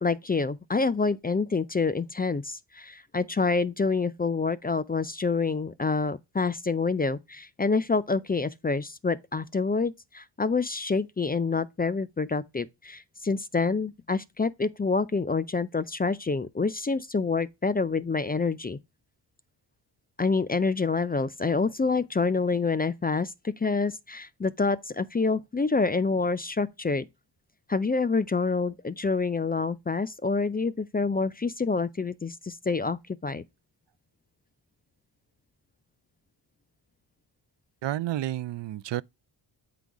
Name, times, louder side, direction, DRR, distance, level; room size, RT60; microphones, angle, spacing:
voice 1, 0.0-18.8 20.2-27.1 27.7-33.4, left 4 dB, 20° left, 0.4 m, -27 dB
voice 2, 37.8-39.0, right 13 dB, 70° right, 0.5 m, -30 dB
8.2 x 3.9 x 4.6 m
cardioid pair, 90°, 45 cm